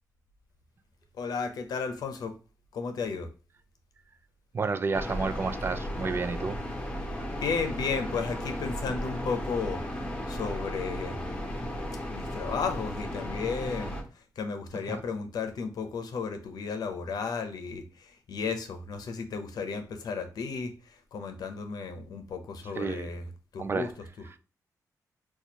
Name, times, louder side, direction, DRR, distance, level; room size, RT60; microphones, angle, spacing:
voice 1, 1.2-2.4 2.7-3.3 7.3-9.8 10.3-11.2 12.1-14.0 14.4-20.7 21.1-23.2 23.5-23.9, left 5 dB, 75° left, 0.6 m, -33 dB
voice 2, 4.5-6.6 14.9-15.0 22.8-23.1 23.6-23.9, right 4 dB, 35° right, 0.3 m, -30 dB
sound 1, 4.9-14.0, equal, 20° left, 0.8 m, -35 dB
4.2 x 2.3 x 2.8 m
cardioid pair, 100°, 7 cm